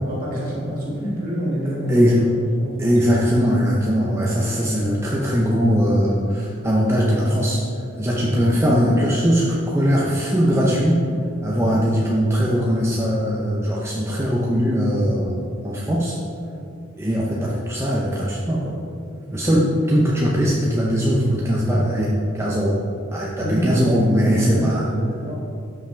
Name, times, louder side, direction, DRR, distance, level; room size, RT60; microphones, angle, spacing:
voice 1, 0.0-2.3 2.6-3.2 23.4-25.3, equal, 45° right, -5 dB, 2.1 m, -28 dB
voice 2, 1.9-2.2 2.8-7.6 8.0-11.0 11.4-16.2 17.0-18.8 19.3-22.8 23.1-24.9, equal, 15° right, -5 dB, 0.7 m, -20 dB
12.0 x 5.8 x 3.4 m, 2.6 s
head